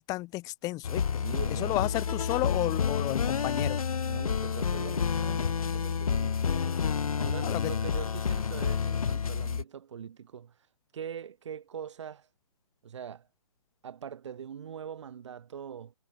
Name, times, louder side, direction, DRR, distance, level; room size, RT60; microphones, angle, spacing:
voice 1, 0.0-1.2 1.5-3.8 7.4-7.7, left 19 dB, 20° left, 2.0 m, -32 dB
sound 1, 0.8-9.6, left 6 dB, 70° left, 0.6 m, -29 dB
voice 2, 1.2-1.7 4.0-6.8 7.2-10.5 10.9-12.3 12.8-13.3 13.8-15.9, right 8 dB, 50° right, 3.3 m, -42 dB
figure-of-eight pair, 135°, 19 cm